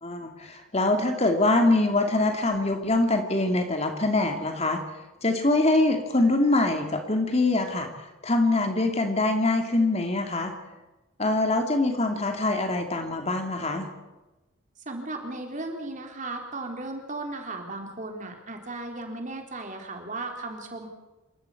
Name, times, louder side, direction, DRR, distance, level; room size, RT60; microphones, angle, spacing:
voice 1, 0.0-4.8 5.2-7.9 8.2-10.5 11.2-13.9, left 2 dB, 30° left, 4 dB, 2.5 m, -24 dB
voice 2, 14.9-20.9, right 2 dB, 35° right, 3 dB, 3.8 m, -36 dB
27.5 x 14.0 x 8.5 m, 1.1 s
head